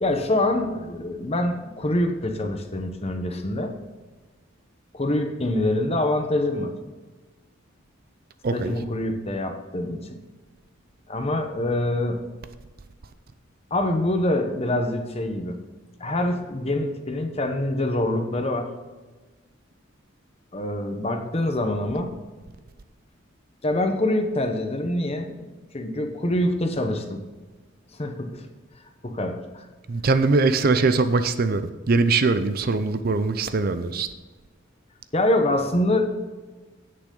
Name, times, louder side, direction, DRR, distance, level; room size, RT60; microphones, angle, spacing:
voice 1, 0.0-3.7 4.9-6.7 8.5-10.2 11.1-12.2 13.7-15.6 16.0-18.7 20.5-22.1 23.6-25.5 25.7-27.2 27.9-28.4 29.0-29.6 35.1-36.2, left 1 dB, 30° left, 5 dB, 1.0 m, -25 dB
voice 2, 8.4-8.7 29.9-31.6 31.9-34.1, right 3 dB, 45° right, 11 dB, 0.5 m, -21 dB
10.0 x 8.9 x 3.9 m, 1.3 s
head